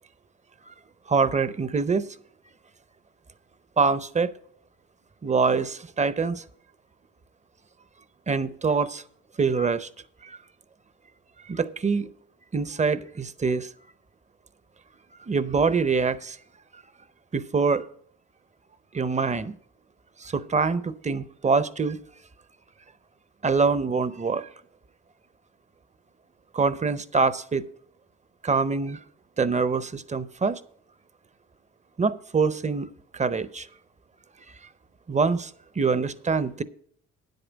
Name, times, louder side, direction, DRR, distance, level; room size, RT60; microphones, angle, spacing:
voice 1, 1.1-2.1 3.8-4.3 5.2-6.4 8.3-9.0 9.4-9.9 10.2-10.4 11.5-12.1 12.5-13.7 15.3-16.4 17.3-17.8 18.9-19.5 20.2-22.0 23.4-24.5 26.5-27.6 28.4-29.0 29.4-30.6 32.0-32.9 33.1-33.7 35.1-35.5 35.8-36.6, right 4 dB, 25° right, 0.6 m, -24 dB
9.8 x 8.0 x 5.1 m
cardioid pair, 90°, 30 cm